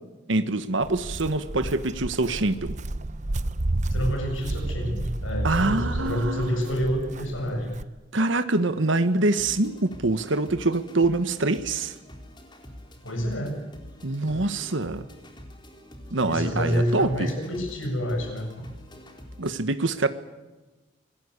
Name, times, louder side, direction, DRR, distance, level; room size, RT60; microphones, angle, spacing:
voice 1, 0.3-2.8 5.4-6.6 8.1-11.9 14.0-15.1 16.1-17.3 19.4-20.1, right 2 dB, 70° right, 10 dB, 1.3 m, -25 dB
Walk footsteps, 0.8-7.8, right 1 dB, 40° right, 0.8 m, -31 dB
voice 2, 3.9-7.7 13.0-13.6 14.2-14.4 16.2-18.5, equal, 85° left, 3 dB, 7.8 m, -28 dB
sound 1, 8.5-19.5, equal, 25° left, 3.8 m, -46 dB
27.0 x 20.5 x 8.3 m, 1.2 s
head